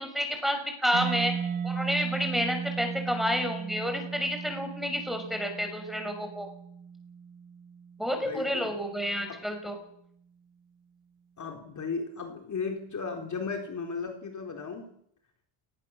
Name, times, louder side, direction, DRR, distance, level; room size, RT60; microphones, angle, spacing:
voice 1, 0.0-1.3 1.6-6.5 8.0-9.8, equal, ahead, 4 dB, 6.2 m, -30 dB
Mallet percussion, 0.9-8.4, right 7 dB, 85° right, 4.8 m, -36 dB
voice 2, 8.2-8.7 9.3-9.4 11.4-14.9, left 4 dB, 35° left, 4 dB, 3.8 m, -35 dB
28.5 x 20.0 x 7.2 m, 0.69 s
cardioid pair, 125°, 48 cm